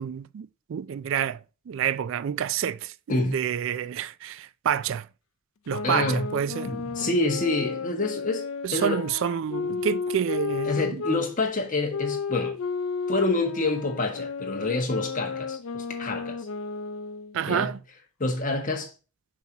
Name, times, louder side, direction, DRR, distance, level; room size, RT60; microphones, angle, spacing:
voice 1, 0.0-1.4 1.7-5.1 5.7-6.7 8.6-11.0 17.3-17.8, right 8 dB, 60° right, 0.3 m, -28 dB
sound 1, 5.7-11.2 11.9-17.4, left 5 dB, 75° left, 0.6 m, -33 dB
voice 2, 5.8-6.3 6.6-8.4 8.7-9.0 10.6-12.6 13.1-16.4 17.5-17.7 18.2-18.9, left 2 dB, 40° left, 1.6 m, -27 dB
7.1 x 6.0 x 2.8 m
head